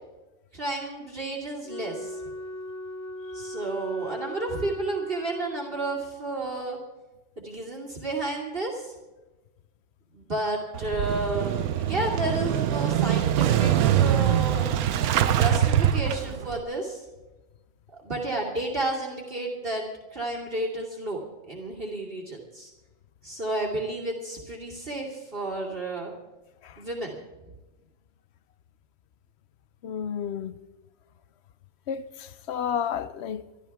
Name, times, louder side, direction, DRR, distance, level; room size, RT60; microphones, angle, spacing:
voice 1, 0.5-2.2 3.3-6.8 7.4-8.9 10.1-14.7 15.3-17.0 17.9-21.2 21.5-22.7 23.2-26.1 26.8-27.2, right 2 dB, 40° right, 2.7 m, -31 dB
Wind instrument woodwind instrument, 1.6-6.1, left 1 dB, 15° left, 0.6 m, -38 dB
Motorcycle / Engine starting, 10.7-16.6, right 10 dB, 85° right, 1.2 m, -23 dB
voice 2, 29.8-30.5 31.9-33.4, left 8 dB, 60° left, 0.8 m, -31 dB
24.0 x 13.0 x 3.5 m
omnidirectional pair, 1.5 m